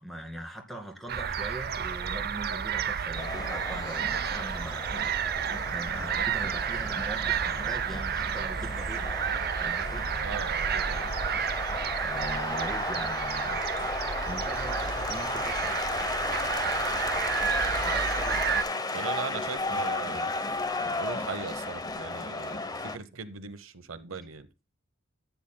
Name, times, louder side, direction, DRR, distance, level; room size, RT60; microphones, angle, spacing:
voice 1, 0.0-4.8 5.7-9.1 9.6-10.0 12.0-15.9 17.8-18.6, right 1 dB, ahead, 2.3 m, -41 dB
sound 1, 1.1-18.6, right 7 dB, 50° right, 0.6 m, -31 dB
sound 2, 3.2-23.0, left 3 dB, 20° left, 0.8 m, -34 dB
voice 2, 10.2-11.0 18.9-20.3 21.0-24.5, right 5 dB, 90° right, 1.0 m, -39 dB
14.0 x 9.2 x 2.2 m
head